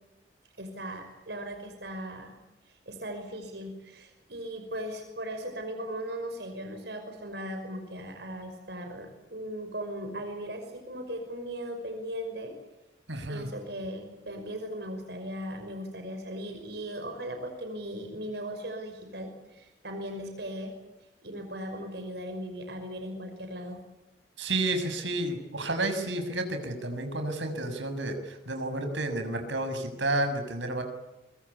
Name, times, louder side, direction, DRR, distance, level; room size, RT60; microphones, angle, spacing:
voice 1, 0.6-2.3 2.7-12.5 13.3-20.7 21.2-23.8, equal, 65° right, 5 dB, 5.7 m, -38 dB
voice 2, 13.1-13.5 24.4-30.8, right 2 dB, 90° right, 7 dB, 6.6 m, -31 dB
25.0 x 24.5 x 8.6 m, 0.98 s
head